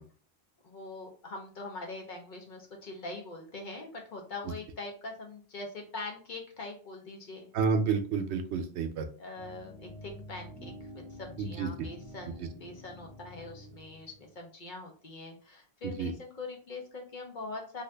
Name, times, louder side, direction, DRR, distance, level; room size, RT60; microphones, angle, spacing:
voice 1, 0.6-7.5 9.2-17.8, left 2 dB, 50° left, 1 dB, 0.8 m, -43 dB
voice 2, 7.5-9.1 11.4-11.9 16.0-16.1, right 5 dB, 85° right, 7 dB, 0.9 m, -30 dB
sound 1, 9.4-14.4, left 1 dB, 5° right, 0.9 m, -48 dB
2.8 x 2.5 x 3.2 m, 0.40 s
omnidirectional pair, 1.1 m